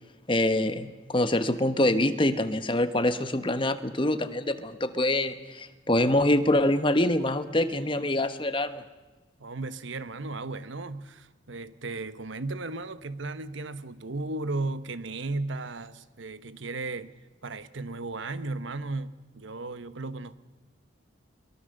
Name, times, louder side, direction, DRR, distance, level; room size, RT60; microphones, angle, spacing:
voice 1, 0.3-8.8, left 1 dB, 25° left, 1.2 m, -25 dB
voice 2, 9.4-17.1 17.4-20.4, right 3 dB, 70° right, 1.1 m, -35 dB
23.0 x 22.5 x 6.6 m
head